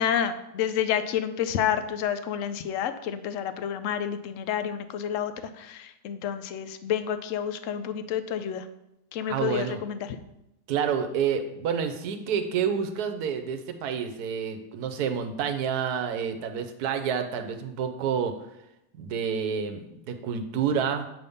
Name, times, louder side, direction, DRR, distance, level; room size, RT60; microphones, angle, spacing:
voice 1, 0.0-8.7 9.1-10.2, left 9 dB, 70° left, 11 dB, 0.8 m, -29 dB
voice 2, 9.3-9.8 10.7-18.3 19.0-21.1, right 7 dB, 80° right, 7 dB, 1.2 m, -29 dB
8.2 x 3.5 x 5.4 m, 0.85 s
omnidirectional pair, 1.7 m